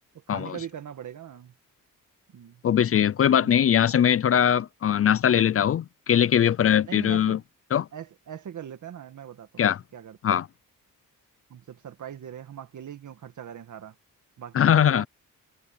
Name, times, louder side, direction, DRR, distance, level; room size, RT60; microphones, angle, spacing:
voice 1, 0.1-1.5 2.3-2.6 3.4-3.6 6.8-7.4 7.9-10.4 11.5-14.0 14.4-15.1, right 9 dB, 60° right, 2.0 m, -41 dB
voice 2, 2.6-7.4 7.7-7.9 9.6-9.8 10.2-10.5 14.5-15.1, left 9 dB, 45° left, 0.5 m, -21 dB
wide cardioid pair, 135°, 33 cm